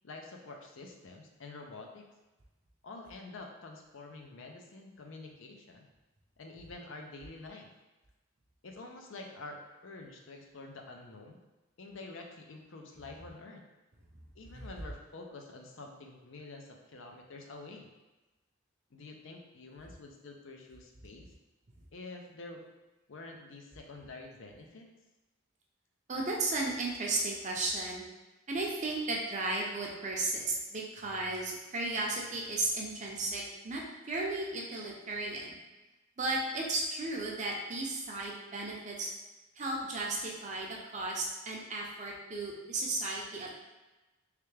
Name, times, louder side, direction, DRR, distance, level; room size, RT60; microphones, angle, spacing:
voice 1, 0.0-2.1 2.8-5.9 6.4-7.7 8.6-11.4 11.8-13.6 14.4-17.9 18.9-21.3 21.9-22.6 23.1-24.9, left 3 dB, 65° left, 2 dB, 0.5 m, -48 dB
voice 2, 26.1-28.0 28.5-35.6 36.2-39.1 39.6-40.7 40.9-43.5, right 2 dB, 35° right, -1 dB, 0.6 m, -34 dB
3.3 x 3.3 x 3.3 m, 1.1 s
head